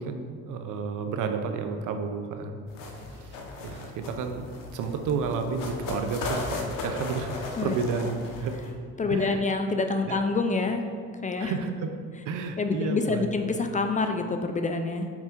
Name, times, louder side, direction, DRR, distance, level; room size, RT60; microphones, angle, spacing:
voice 1, 0.0-2.7 3.1-4.5 4.7-7.3 7.6-8.6 9.1-9.4 10.1-10.2 11.4-11.9 12.3-13.3, right 5 dB, 70° right, 7 dB, 0.7 m, -31 dB
sound 1, 2.7-8.7, left 3 dB, 85° left, 1.0 m, -37 dB
voice 2, 9.0-10.8 11.2-11.5 12.6-15.1, left 3 dB, 25° left, 6 dB, 0.4 m, -27 dB
5.9 x 4.6 x 4.5 m, 2.2 s
cardioid pair, 115°, 32 cm